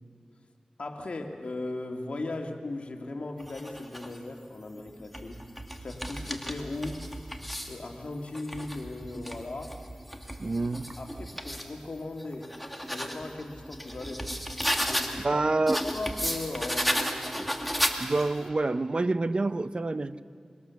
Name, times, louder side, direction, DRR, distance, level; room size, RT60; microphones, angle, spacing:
voice 1, 0.8-5.4 5.8-7.1 7.7-9.8 11.0-12.6 12.9-14.4 14.7-15.4 15.8-17.2, left 2 dB, 65° left, 3 dB, 2.1 m, -37 dB
sound 1, 3.4-4.2 4.9-7.8 8.3-11.7 12.2-15.3 15.7-18.4, equal, ahead, 2.4 m, -34 dB
voice 2, 10.4-10.9 15.2-15.8 18.0-20.2, right 2 dB, 45° right, 13 dB, 0.8 m, -27 dB
25.0 x 25.0 x 7.1 m, 2.4 s
cardioid pair, 50°, 2 cm